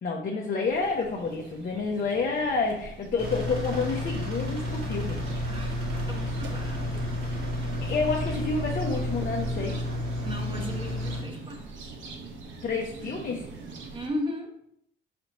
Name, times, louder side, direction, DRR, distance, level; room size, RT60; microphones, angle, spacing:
voice 1, 0.0-5.2 7.9-9.8 12.6-13.5, left 4 dB, 45° left, -1 dB, 0.7 m, -29 dB
sound 1, 0.6-14.1, right 4 dB, 75° right, 0.8 m, -43 dB
Engine, 3.2-11.2, left 1 dB, 55° right, 1.8 m, -31 dB
voice 2, 5.5-5.8 6.1-7.0 10.2-11.9 13.9-14.5, left 1 dB, 25° right, 1 dB, 1.0 m, -36 dB
4.3 x 4.0 x 3.0 m, 0.75 s
cardioid pair, 90°, 20 cm